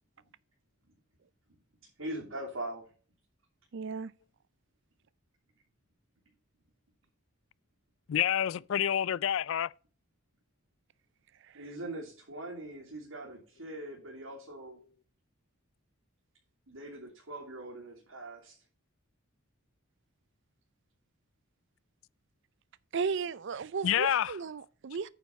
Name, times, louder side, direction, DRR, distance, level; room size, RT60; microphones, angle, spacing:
voice 1, 2.0-2.9 11.5-14.8 16.7-18.5, right 1 dB, 90° right, 2.9 m, -42 dB
voice 2, 3.7-4.1 11.5-11.6 22.9-25.1, right 5 dB, 60° right, 0.4 m, -35 dB
voice 3, 8.1-9.7 23.8-24.3, left 10 dB, 65° left, 0.3 m, -28 dB
9.2 x 5.4 x 5.4 m
head